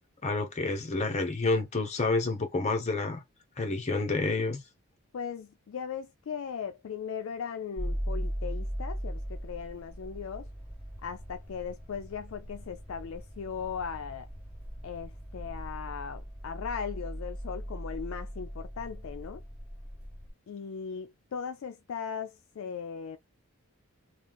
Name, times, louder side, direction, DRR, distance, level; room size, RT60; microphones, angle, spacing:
voice 1, 0.2-3.2 3.6-4.6, left 3 dB, 30° left, 0.7 m, -29 dB
voice 2, 5.1-10.5 11.0-14.3 14.8-19.4 20.5-23.2, left 6 dB, 65° left, 0.3 m, -38 dB
sound 1, 7.8-20.3, equal, 10° right, 1.3 m, -39 dB
3.1 x 2.3 x 3.4 m
head